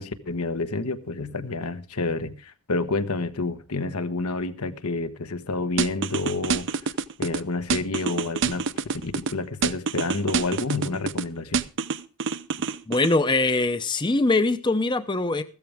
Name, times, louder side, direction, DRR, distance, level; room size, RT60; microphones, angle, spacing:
voice 1, 0.0-6.9 7.2-8.6 9.0-11.6, left 3 dB, 80° left, 1.2 m, -29 dB
sound 1, 5.8-7.4 7.7-9.3 9.6-11.2 11.5-13.1, right 5 dB, 55° right, 0.6 m, -26 dB
voice 2, 12.9-15.4, left 2 dB, 20° left, 0.6 m, -22 dB
15.5 x 13.5 x 3.5 m
head